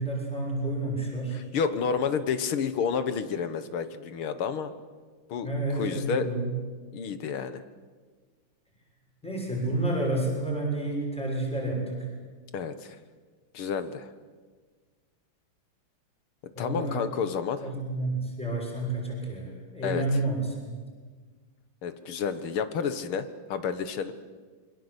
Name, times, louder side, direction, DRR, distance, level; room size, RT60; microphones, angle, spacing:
voice 1, 0.0-1.4 5.4-6.5 9.2-12.1 16.5-17.0 17.6-20.7, right 2 dB, 5° left, -1 dB, 6.7 m, -30 dB
voice 2, 1.3-4.7 5.3-6.3 6.9-7.6 12.5-13.0 13.5-14.1 16.6-17.6 19.8-20.0 21.8-24.1, left 6 dB, 80° left, 11 dB, 2.2 m, -30 dB
27.5 x 23.0 x 8.2 m, 1.5 s
omnidirectional pair, 2.3 m